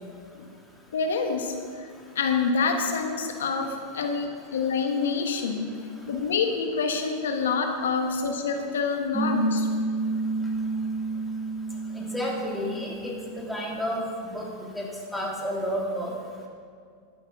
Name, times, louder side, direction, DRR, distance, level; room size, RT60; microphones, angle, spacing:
voice 1, 0.9-5.7 6.1-9.7, left 5 dB, 85° left, 4 dB, 1.3 m, -27 dB
Piano, 9.1-14.3, right 3 dB, 20° right, 1.2 m, -31 dB
voice 2, 11.9-13.1 13.5-14.9 15.1-16.1, equal, 5° left, -3 dB, 2.9 m, -31 dB
13.0 x 8.9 x 6.1 m, 2.2 s
hypercardioid pair, 110°, 0 cm